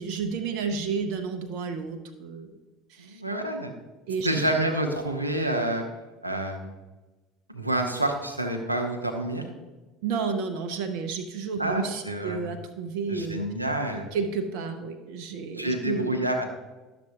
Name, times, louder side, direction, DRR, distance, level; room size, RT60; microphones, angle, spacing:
voice 1, 0.0-2.5 2.9-3.2 4.1-4.3 10.0-13.4 14.1-16.1, right 5 dB, 55° right, 7 dB, 0.6 m, -31 dB
voice 2, 3.0-3.7 4.2-5.8 6.2-6.7 7.5-9.4 11.6-12.4 13.1-14.1 15.6-16.5, right 1 dB, 85° right, 5 dB, 0.8 m, -28 dB
11.5 x 6.8 x 2.7 m, 1.2 s
figure-of-eight pair, 65°, 0 cm